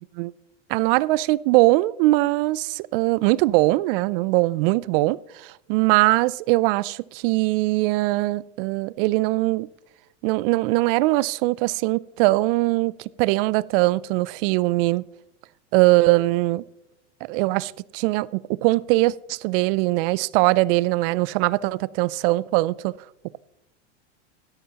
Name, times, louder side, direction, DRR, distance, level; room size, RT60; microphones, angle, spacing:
voice 1, 0.7-9.7 10.2-15.0 15.7-16.6 17.2-22.9, right 20 dB, 50° right, 0.4 m, -21 dB
12.5 x 11.5 x 2.9 m
hypercardioid pair, 105°, 36 cm